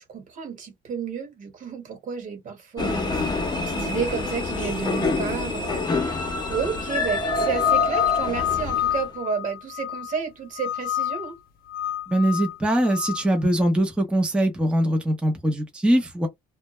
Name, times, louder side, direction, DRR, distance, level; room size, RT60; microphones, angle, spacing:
voice 1, 0.1-11.4, right 6 dB, 50° right, 1.3 m, -31 dB
sound 1, 2.8-9.1, left 2 dB, 25° left, 0.8 m, -27 dB
sound 2, 7.3-10.2 10.6-11.3 11.7-13.2, left 11 dB, 60° left, 0.5 m, -27 dB
voice 2, 12.1-16.3, right 1 dB, 5° right, 0.7 m, -22 dB
2.2 x 2.0 x 3.0 m
cardioid pair, 110°, 17 cm